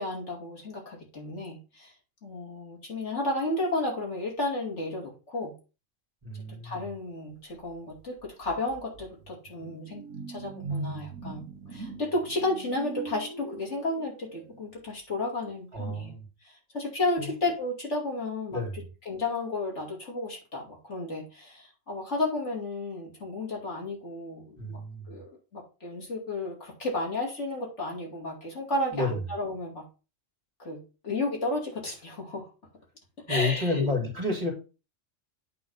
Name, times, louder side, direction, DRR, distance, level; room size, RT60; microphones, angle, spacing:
voice 1, 0.0-1.9 2.2-5.5 6.6-10.0 10.3-16.1 16.4-24.8 25.1-29.9 30.6-32.5 33.3-33.9, left 2 dB, 65° left, -1 dB, 2.9 m, -33 dB
voice 2, 6.2-6.9 15.7-16.2 17.2-17.3 18.5-18.9 24.6-25.2 28.9-29.2 33.3-34.5, left 2 dB, 30° right, -1 dB, 2.6 m, -30 dB
sound 1, 8.0-8.1 8.4-14.6, right 3 dB, 85° right, 1.6 m, -40 dB
8.6 x 3.9 x 5.6 m, 0.31 s
omnidirectional pair, 1.3 m